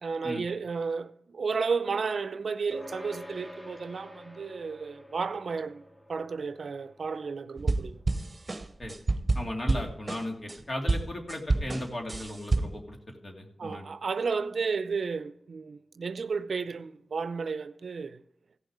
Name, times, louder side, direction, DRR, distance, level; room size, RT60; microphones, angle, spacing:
voice 1, 0.0-5.8 6.1-8.0 13.6-18.2, right 5 dB, 75° right, 0.5 m, -32 dB
sound 1, 2.7-12.4, left 1 dB, 15° left, 1.7 m, -50 dB
sound 2, 7.6-10.6 10.9-12.9, right 3 dB, 40° right, 0.8 m, -29 dB
voice 2, 9.3-13.9, left 1 dB, 45° left, 2.7 m, -36 dB
16.0 x 6.5 x 4.8 m
cardioid pair, 45°, 0 cm